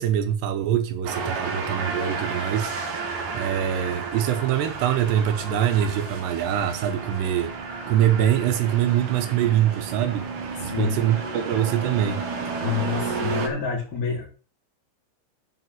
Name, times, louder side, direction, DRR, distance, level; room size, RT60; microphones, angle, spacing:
voice 1, 0.0-2.7 3.3-7.5 7.9-10.3 10.6-12.2, right 10 dB, 75° right, 3.0 m, -24 dB
sound 1, 1.0-13.5, right 4 dB, 55° right, 3.0 m, -32 dB
voice 2, 10.5-11.0 12.6-14.3, left 7 dB, 20° left, 3.9 m, -28 dB
8.0 x 5.4 x 7.6 m
omnidirectional pair, 5.1 m